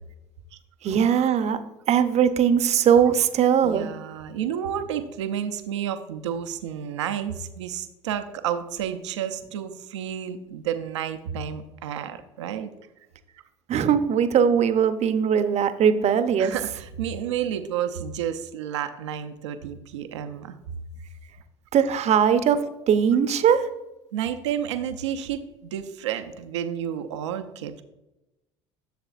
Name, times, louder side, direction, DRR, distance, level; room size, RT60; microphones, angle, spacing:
voice 1, 0.8-3.9 13.7-16.5 21.7-22.6 22.9-23.7, right 8 dB, 50° right, 10 dB, 0.8 m, -20 dB
voice 2, 3.6-12.7 16.4-20.5 24.1-27.8, right 9 dB, 90° right, 8 dB, 0.6 m, -31 dB
11.5 x 6.8 x 2.5 m, 0.96 s
hypercardioid pair, 70°, 15 cm